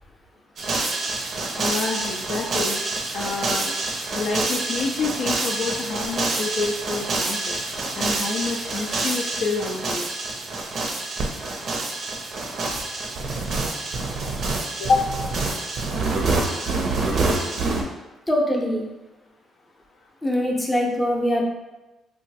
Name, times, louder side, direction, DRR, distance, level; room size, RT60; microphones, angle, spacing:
sound 1, 0.6-17.8, right 3 dB, 60° right, 0.5 m, -27 dB
voice 1, 1.6-2.8 3.1-3.7 4.1-7.6 8.0-10.1 14.8-15.1, left 4 dB, 70° left, 1 dB, 0.3 m, -27 dB
voice 2, 18.3-18.9 20.2-21.4, equal, 15° left, -1 dB, 0.6 m, -22 dB
3.0 x 2.2 x 2.7 m, 1.1 s
cardioid pair, 90°, 0 cm